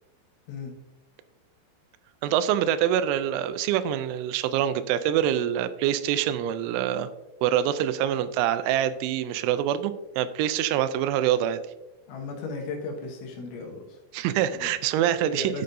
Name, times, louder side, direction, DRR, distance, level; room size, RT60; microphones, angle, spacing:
voice 1, 2.2-7.1 7.4-11.6 14.1-15.5, right 11 dB, 85° right, 12 dB, 2.9 m, -25 dB
voice 2, 12.1-14.0 14.5-14.7 15.3-15.6, left 3 dB, 80° left, 2 dB, 3.6 m, -35 dB
12.0 x 6.5 x 2.5 m, 0.98 s
omnidirectional pair, 5.4 m